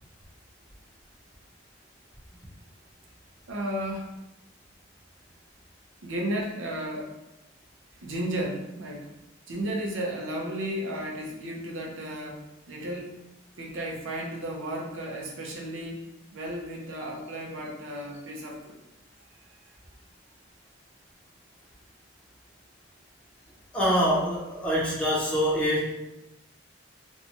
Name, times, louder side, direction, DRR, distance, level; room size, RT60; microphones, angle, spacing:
voice 1, 3.5-4.2 6.0-7.1 8.0-9.1 9.5-13.2 13.6-18.8 19.7-19.8, right 1 dB, 80° right, -1 dB, 0.6 m, -34 dB
voice 2, 23.7-25.9, equal, 5° left, -7 dB, 0.7 m, -25 dB
2.6 x 2.2 x 2.8 m, 0.95 s
head